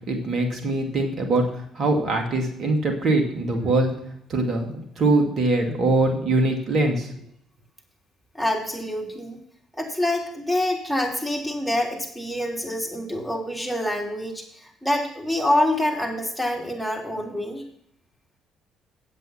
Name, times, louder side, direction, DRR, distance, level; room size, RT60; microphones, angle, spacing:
voice 1, 0.1-3.9 4.3-7.2, right 2 dB, 55° right, 2 dB, 2.4 m, -23 dB
voice 2, 8.3-9.4 9.8-17.6, left 1 dB, ahead, -1 dB, 3.6 m, -26 dB
8.6 x 8.0 x 5.7 m, 0.68 s
hypercardioid pair, 50°, 0 cm